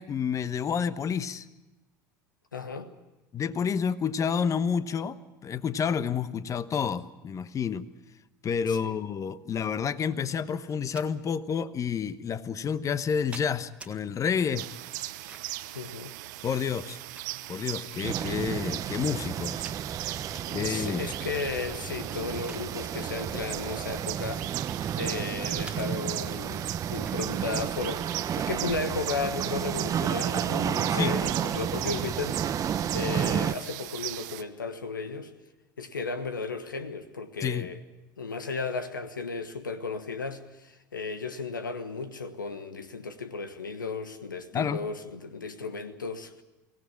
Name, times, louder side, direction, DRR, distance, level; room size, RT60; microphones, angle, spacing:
voice 1, 0.0-1.4 3.3-7.8 8.4-14.7 16.4-17.0 17.5-19.6 20.5-21.1 30.9-31.1 37.4-37.7 44.5-44.8, left 7 dB, 30° left, 1.1 m, -29 dB
voice 2, 2.5-2.9 8.7-9.0 15.7-16.2 20.4-24.5 25.0-35.3 35.8-37.8 38.2-46.4, left 4 dB, 90° left, 1.2 m, -35 dB
sound 1, 10.6-11.1 12.0-12.1 12.9-13.9 15.0-15.6 16.6-17.7 18.2-18.3 18.7-19.3 19.6-19.8 21.1-21.5 21.9-22.7 23.0-23.2 24.0-25.1 25.6-25.9 27.0-27.2, right 3 dB, 10° right, 1.9 m, -48 dB
sound 2, 14.5-34.4, right 17 dB, 65° right, 0.9 m, -38 dB
sound 3, 18.0-33.5, right 9 dB, 35° right, 0.8 m, -32 dB
23.5 x 18.0 x 8.5 m
hypercardioid pair, 75°, 10 cm